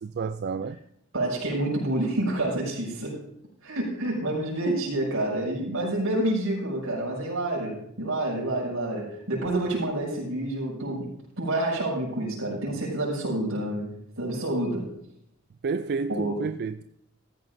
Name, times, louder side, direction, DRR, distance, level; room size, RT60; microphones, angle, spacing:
voice 1, 0.0-0.8 15.6-16.8, right 5 dB, 50° right, 0.4 m, -30 dB
voice 2, 1.1-3.2 3.6-11.1 11.4-13.9 14.2-14.9 16.1-16.5, right 1 dB, 80° right, 6.3 m, -28 dB
15.5 x 14.0 x 2.7 m
head